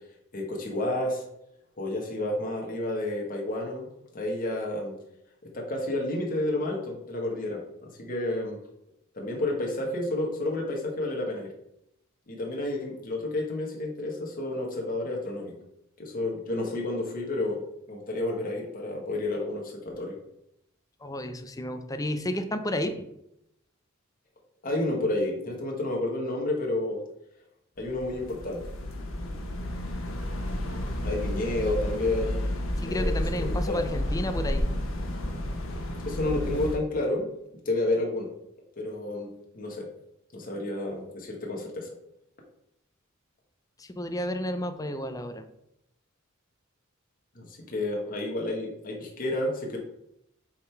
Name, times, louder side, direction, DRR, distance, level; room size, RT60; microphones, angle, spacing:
voice 1, 0.3-1.2 1.8-3.9 4.1-5.0 5.4-8.6 9.1-11.5 12.3-15.5 16.0-17.6 17.9-20.2 24.6-27.0 27.8-28.6 31.0-32.4 32.9-33.8 36.0-37.3 37.6-38.3 38.8-39.9 40.3-41.9 47.3-49.8, left 2 dB, 45° left, 0 dB, 1.4 m, -30 dB
voice 2, 21.0-23.0 32.8-34.7 43.8-45.4, left 1 dB, 15° left, 8 dB, 0.6 m, -32 dB
sound 1, 27.8-36.8, left 1 dB, 70° left, 1.1 m, -31 dB
7.5 x 3.8 x 4.5 m, 0.80 s
head